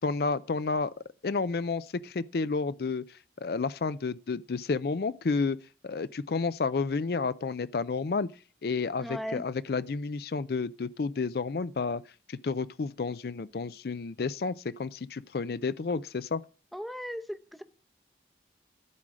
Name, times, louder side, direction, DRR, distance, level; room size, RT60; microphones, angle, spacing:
voice 1, 0.0-0.9 1.2-3.0 3.4-5.6 5.8-8.3 8.6-12.0 12.3-14.5 14.8-16.4, left 4 dB, 60° left, 0.4 m, -31 dB
voice 2, 9.0-9.4 16.7-17.6, equal, ahead, 0.7 m, -37 dB
12.5 x 4.9 x 7.4 m
head